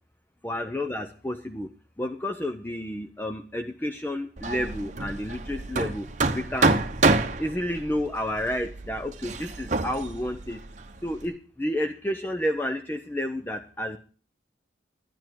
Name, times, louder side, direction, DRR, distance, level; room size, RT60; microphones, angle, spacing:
voice 1, 0.4-1.7 2.0-6.1 6.3-6.8 7.4-10.6 11.0-14.0, left 1 dB, 10° left, 6 dB, 0.6 m, -30 dB
Hammer, 4.4-11.2, right 3 dB, 40° right, 0.9 m, -28 dB
11.5 x 10.5 x 4.5 m, 0.39 s
head